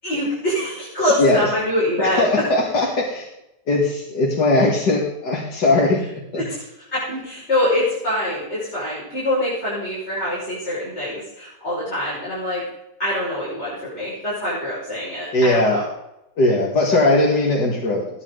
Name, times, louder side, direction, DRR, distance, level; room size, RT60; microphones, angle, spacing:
voice 1, 0.0-2.3 6.4-12.6 13.0-15.8, left 1 dB, 40° left, -9 dB, 6.3 m, -24 dB
voice 2, 2.2-3.3 3.7-6.4 15.3-15.8 16.4-18.2, left 2 dB, 75° left, -3 dB, 2.8 m, -19 dB
19.0 x 10.0 x 4.0 m, 0.87 s
omnidirectional pair, 1.8 m